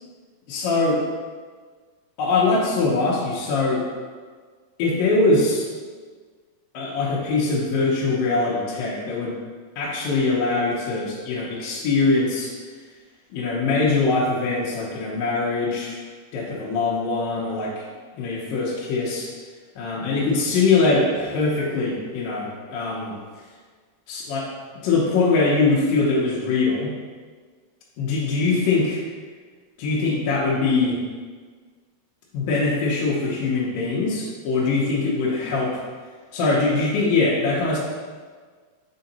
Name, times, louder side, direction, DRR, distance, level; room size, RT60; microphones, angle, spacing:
voice 1, 0.5-1.0 2.2-3.9 4.8-5.7 6.7-9.4 9.8-12.5 13.3-16.0 16.3-17.9 18.2-19.3 19.8-23.2 24.1-24.5 24.8-26.9 28.0-29.0 29.8-31.0 32.3-35.8 36.3-37.8, left 3 dB, 75° left, -6 dB, 2.5 m, -22 dB
6.8 x 3.8 x 4.1 m, 1.6 s
omnidirectional pair, 4.2 m